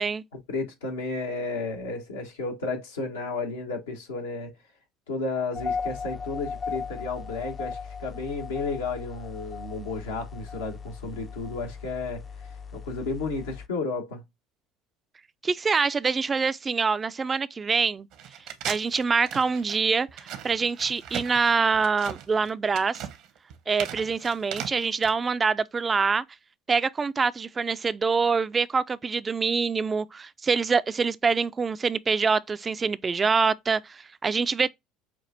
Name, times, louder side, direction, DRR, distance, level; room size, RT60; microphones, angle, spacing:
voice 1, 0.3-4.5 5.1-12.2 12.7-14.2, left 3 dB, 90° left, 1.2 m, -32 dB
sound 1, 5.5-13.7, left 5 dB, 40° left, 0.4 m, -37 dB
voice 2, 15.4-18.1 18.7-23.0 23.7-26.2 26.7-34.7, right 5 dB, 30° right, 0.3 m, -25 dB
sound 2, 18.1-25.1, right 9 dB, 65° right, 0.8 m, -38 dB
6.0 x 2.4 x 2.6 m
hypercardioid pair, 75°, 0 cm